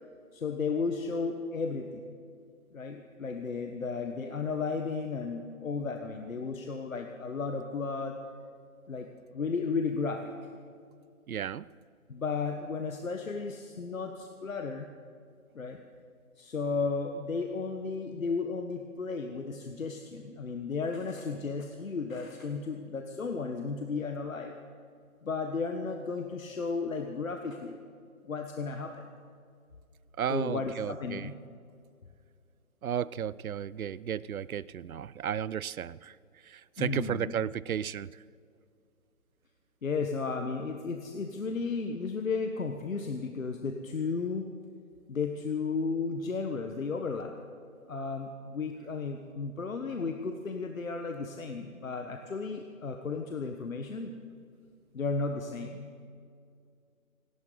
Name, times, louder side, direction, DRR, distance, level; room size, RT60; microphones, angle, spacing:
voice 1, 0.3-2.2 2.7-8.2 8.9-10.3 12.1-14.9 15.5-15.8 16.4-24.5 25.2-27.8 28.2-29.0 30.3-31.3 36.8-37.3 39.8-44.5 45.1-47.3 47.8-54.1 54.9-55.9, left 4 dB, 65° left, 1.3 m, -34 dB
voice 2, 11.3-11.7 30.2-31.3 32.8-36.2 36.4-38.1, right 9 dB, 70° right, 0.6 m, -34 dB
27.5 x 12.0 x 3.9 m
hypercardioid pair, 175°, 44 cm